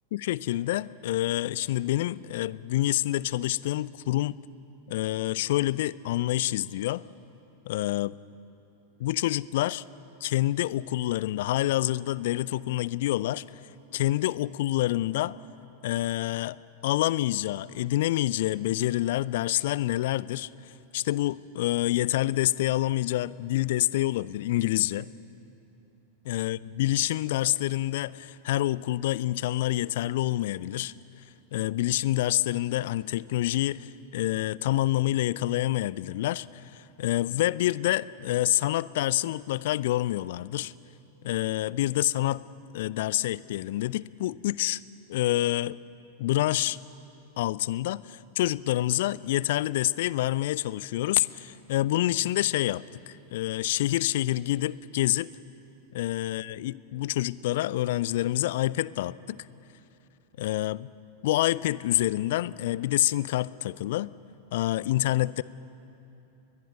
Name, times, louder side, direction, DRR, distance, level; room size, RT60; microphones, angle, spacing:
voice 1, 0.1-4.4 4.9-7.0 7.7-8.1 9.0-9.8 10.2-13.4 13.9-15.3 15.8-16.6 16.8-20.5 20.9-25.1 26.2-30.9 31.5-40.7 41.2-42.4 42.7-44.8 45.1-45.8 46.2-46.8 47.4-55.3 55.9-59.4 60.4-60.9 61.2-64.1 64.5-65.4, left 15 dB, 55° left, 20 dB, 0.5 m, -27 dB
21.0 x 21.0 x 9.2 m, 2.9 s
figure-of-eight pair, 90°, 0 cm